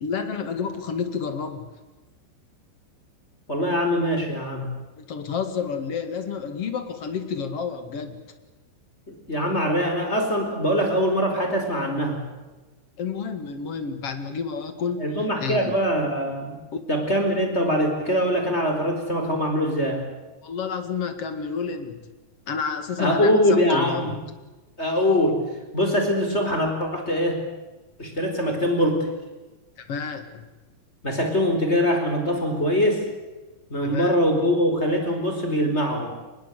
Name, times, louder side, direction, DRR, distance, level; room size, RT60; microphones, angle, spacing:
voice 1, 0.0-1.7 5.0-8.2 13.0-15.1 15.4-15.7 16.7-16.8 20.4-22.0 22.5-24.2 29.8-30.5 33.8-34.2, left 6 dB, 45° left, 9 dB, 2.2 m, -30 dB
voice 2, 3.5-4.7 9.3-12.2 15.0-16.5 16.9-20.0 23.0-24.1 24.8-25.4 25.7-27.4 28.0-29.1 31.0-33.0 33.7-36.1, equal, 15° left, 3 dB, 4.5 m, -23 dB
25.0 x 21.0 x 8.2 m, 1.2 s
omnidirectional pair, 5.2 m